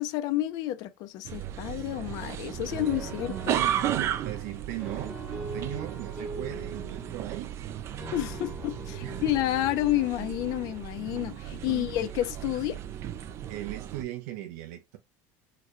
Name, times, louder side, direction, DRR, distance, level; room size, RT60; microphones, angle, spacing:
voice 1, 0.0-3.6 8.1-12.8, left 14 dB, 50° left, 0.5 m, -30 dB
sound 1, 1.2-14.0, right 10 dB, 30° right, 0.3 m, -35 dB
sound 2, 2.4-11.1, right 1 dB, 5° right, 1.0 m, -43 dB
voice 2, 3.5-7.6 9.0-9.2 11.6-11.9 13.5-15.0, right 14 dB, 85° right, 0.7 m, -38 dB
3.8 x 2.2 x 3.0 m
cardioid pair, 165°, 9 cm